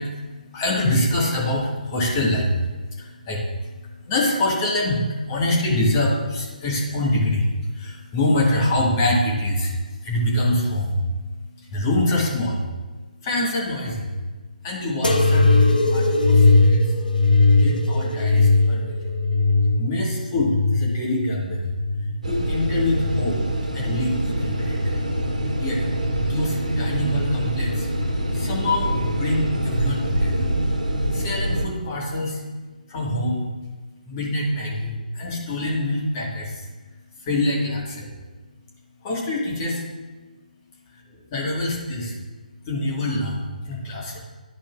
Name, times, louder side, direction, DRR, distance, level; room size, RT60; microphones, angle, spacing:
voice 1, 0.0-12.6 13.2-14.1 14.6-15.5 15.8-16.8 17.5-18.9 19.8-21.7 22.2-23.4 23.7-24.8 25.6-25.8 26.2-27.9 28.3-30.5 31.1-32.4 32.9-33.5 34.0-36.7 37.2-37.8 39.0-39.8 41.3-42.2 42.6-44.2, left 1 dB, 25° left, -3 dB, 1.6 m, -25 dB
sound 1, 15.0-22.2 22.8-23.5 24.3-24.8 25.8-25.9, left 2 dB, 80° left, 0.8 m, -19 dB
sound 2, 22.2-31.7, right 1 dB, 65° right, 1.5 m, -25 dB
11.0 x 5.0 x 2.4 m, 1.3 s
figure-of-eight pair, 145°, 5 cm